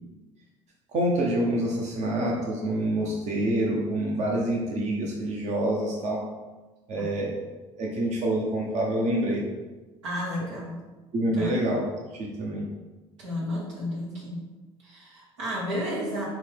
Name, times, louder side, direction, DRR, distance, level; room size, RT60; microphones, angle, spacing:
voice 1, 0.9-6.2 6.9-7.4 7.8-9.4 11.1-11.8 12.1-12.7, right 1 dB, 50° right, -2 dB, 0.8 m, -27 dB
voice 2, 7.0-7.3 10.0-10.8 11.3-11.5 13.2-14.4 14.8-16.2, equal, 90° right, -5 dB, 1.2 m, -32 dB
5.7 x 2.2 x 3.3 m, 1.2 s
hypercardioid pair, 65°, 15 cm